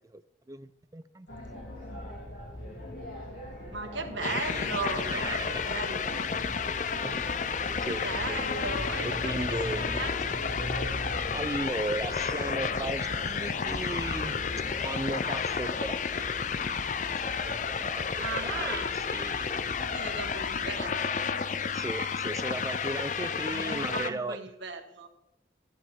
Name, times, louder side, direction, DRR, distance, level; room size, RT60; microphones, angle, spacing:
voice 1, 0.5-1.3 5.0-5.6 7.0-7.4 7.8-8.4 9.0-10.2 11.3-14.4 14.8-16.4 17.1-19.5 21.7-24.4, right 2 dB, 20° right, 13 dB, 0.4 m, -36 dB
sound 1, 1.3-14.8, left 1 dB, 90° left, 3.6 m, -40 dB
voice 2, 3.7-6.3 7.8-10.4 18.1-19.0 19.8-21.2 23.5-25.1, right 4 dB, 75° right, 4 dB, 1.6 m, -37 dB
sound 2, 4.2-24.1, left 6 dB, 40° left, 0.4 m, -32 dB
sound 3, 4.2-21.0, left 1 dB, 20° left, 1.2 m, -44 dB
14.0 x 11.0 x 3.7 m, 0.83 s
head